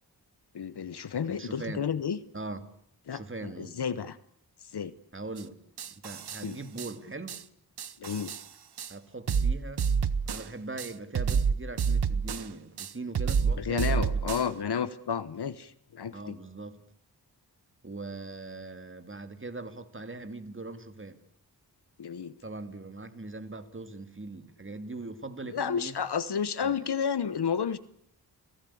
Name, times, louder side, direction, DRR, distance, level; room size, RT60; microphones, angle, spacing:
voice 1, 0.5-2.2 3.1-4.2 4.7-4.9 6.4-6.6 8.0-8.3 13.6-16.4 22.0-22.3 25.5-27.8, left 7 dB, 80° left, 1.1 m, -31 dB
voice 2, 1.3-1.8 2.3-2.6 3.1-3.8 5.1-5.6 6.0-7.4 8.9-9.9 10.3-14.3 16.1-16.8 17.8-21.2 22.4-26.0 26.6-26.8, right 3 dB, 30° right, 2.5 m, -41 dB
sound 1, 5.4-5.5 5.8-6.4 6.8-6.9 7.3-7.4 7.8-8.4 8.8-8.9 9.3-10.5 10.8-12.5 12.8-14.5, right 6 dB, 80° right, 1.1 m, -28 dB
29.5 x 17.5 x 8.6 m
wide cardioid pair, 85°, 39 cm